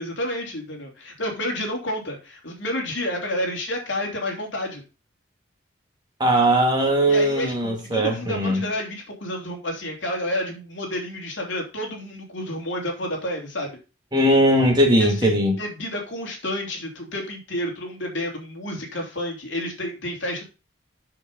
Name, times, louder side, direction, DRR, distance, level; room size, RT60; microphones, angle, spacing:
voice 1, 0.0-4.8 7.1-13.7 14.9-20.4, left 1 dB, 65° left, 3.3 m, -30 dB
voice 2, 6.2-8.7 14.1-15.5, right 1 dB, 20° right, 2.2 m, -19 dB
7.4 x 6.9 x 5.3 m
head